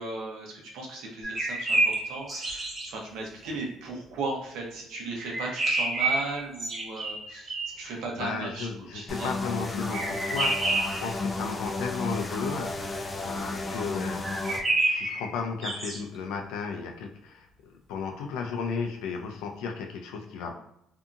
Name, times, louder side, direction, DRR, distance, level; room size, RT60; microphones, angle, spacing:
voice 1, 0.0-9.3 20.5-20.6, right 3 dB, 85° right, -1 dB, 0.8 m, -36 dB
sound 1, 1.2-2.9 5.2-7.8 9.9-11.1 14.2-16.0, right 2 dB, 30° right, 0.8 m, -28 dB
voice 2, 7.8-20.5, left 5 dB, 90° left, 3 dB, 0.4 m, -35 dB
sound 2, 9.1-14.6, left 3 dB, 25° left, 0.4 m, -33 dB
2.7 x 2.5 x 2.4 m, 0.76 s
cardioid pair, 105°, 0 cm